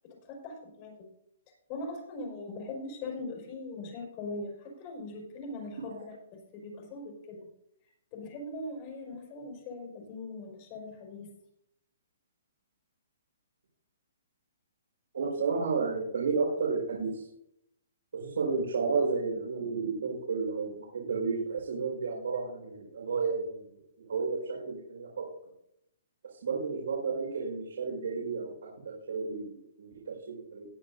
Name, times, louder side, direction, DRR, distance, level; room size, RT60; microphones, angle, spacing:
voice 1, 0.2-1.0 1.7-7.4 8.1-11.3, left 2 dB, 35° left, 0 dB, 4.9 m, -41 dB
voice 2, 15.1-17.3 18.1-23.6 24.0-25.2 26.4-30.7, right 4 dB, 80° right, -4 dB, 5.0 m, -32 dB
20.5 x 8.5 x 2.7 m, 0.77 s
hypercardioid pair, 150°, 0 cm